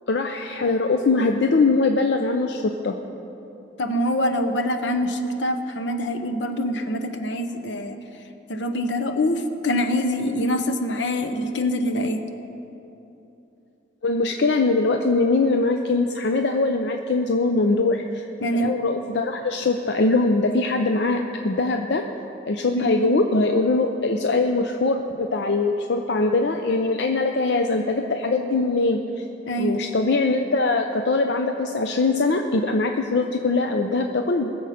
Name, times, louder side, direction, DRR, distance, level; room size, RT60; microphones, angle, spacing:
voice 1, 0.1-2.9 14.0-18.2 18.5-22.0 22.5-29.2 29.6-34.5, left 3 dB, 65° left, 4 dB, 0.6 m, -22 dB
voice 2, 3.8-8.0 8.5-12.2 18.4-18.7 22.7-22.9 29.5-29.8, left 1 dB, 80° left, 7 dB, 0.9 m, -24 dB
20.5 x 7.1 x 5.1 m, 3.0 s
head